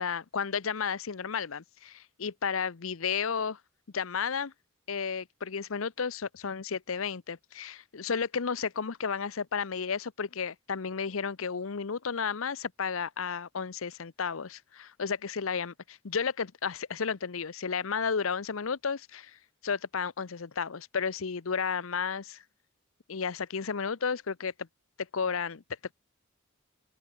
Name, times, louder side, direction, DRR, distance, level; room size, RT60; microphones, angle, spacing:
voice 1, 0.0-3.6 3.9-4.5 4.9-19.4 19.6-22.4 23.1-24.7 25.1-25.6, left 6 dB, 75° left, 0.7 m, -33 dB
open air
head